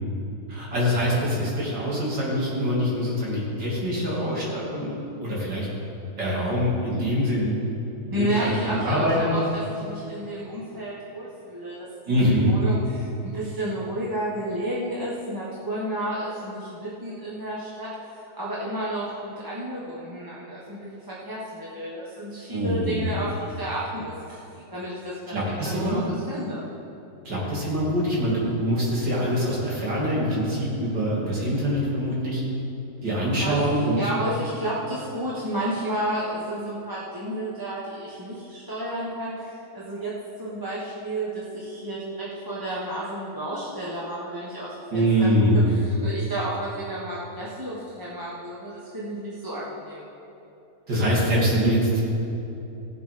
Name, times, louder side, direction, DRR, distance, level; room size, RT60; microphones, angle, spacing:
voice 1, 0.5-4.9 5.2-5.7 6.2-7.5 8.0-9.3 12.1-12.5 22.5-23.1 25.3-26.0 27.3-32.4 33.0-34.1 44.9-45.6 50.9-52.0, equal, 85° right, -6 dB, 3.5 m, -24 dB
voice 2, 8.1-17.9 18.4-26.0 26.3-26.7 33.4-33.6 33.9-45.3 45.7-50.0, right 1 dB, 15° right, -7 dB, 1.2 m, -31 dB
16.0 x 7.6 x 5.1 m, 2.9 s
omnidirectional pair, 1.9 m